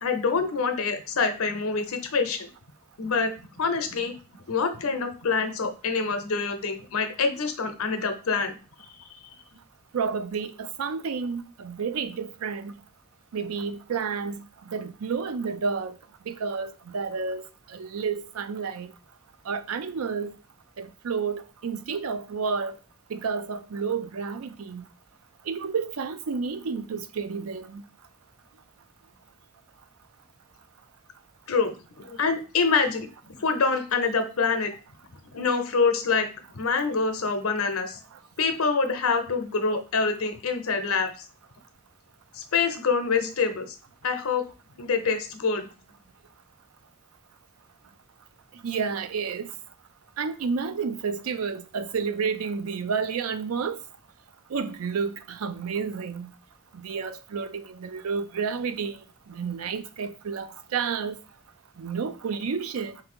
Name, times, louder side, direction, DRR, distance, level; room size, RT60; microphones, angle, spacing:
voice 1, 0.0-2.5 3.0-4.1 4.5-8.6 9.0-9.1 31.5-33.1 33.4-34.7 35.3-38.0 38.4-41.2 42.3-43.7 44.0-44.4 44.8-45.7, left 4 dB, 90° left, 0.7 m, -26 dB
voice 2, 9.9-12.7 13.3-16.0 16.3-17.4 17.7-18.9 19.5-20.3 20.8-22.8 23.1-24.8 25.5-27.8 48.6-49.5 50.2-53.8 54.5-56.3 56.7-59.0 59.3-61.2 61.8-63.0, right 5 dB, 90° right, 0.5 m, -30 dB
3.8 x 2.7 x 4.3 m
head